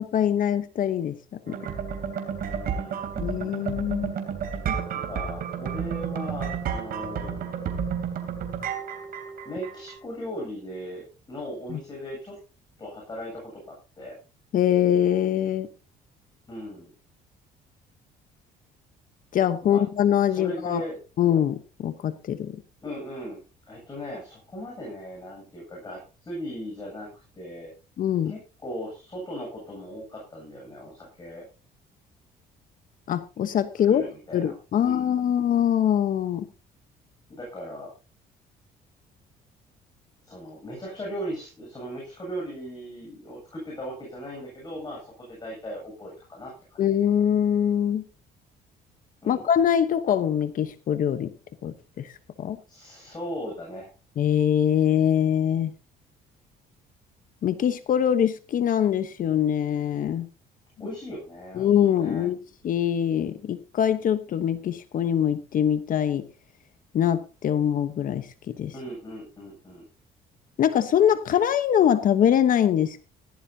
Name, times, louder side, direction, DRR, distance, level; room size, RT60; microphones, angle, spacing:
voice 1, 0.0-1.6 3.2-4.1 11.7-11.8 14.5-15.7 19.3-20.8 21.2-22.6 28.0-28.3 33.1-34.1 34.3-36.5 46.8-48.0 49.3-51.3 51.6-52.1 52.4-52.6 54.2-55.7 57.4-60.3 61.6-62.4 62.6-66.3 66.9-68.7 70.6-73.0, left 9 dB, 55° left, 12 dB, 1.0 m, -23 dB
sound 1, 1.5-10.0, right 7 dB, 60° right, 3.2 m, -31 dB
voice 2, 2.4-3.0 4.9-7.6 9.4-12.4 12.8-14.2 16.5-16.9 19.7-19.8 20.3-21.0 22.8-23.4 23.7-27.7 28.3-31.4 33.8-35.1 37.3-37.9 40.2-46.8 49.2-49.4 52.7-53.9 60.8-62.3 68.7-69.8, equal, 25° left, -2 dB, 7.7 m, -38 dB
16.0 x 14.0 x 2.8 m, 0.32 s
cardioid pair, 110°, 17 cm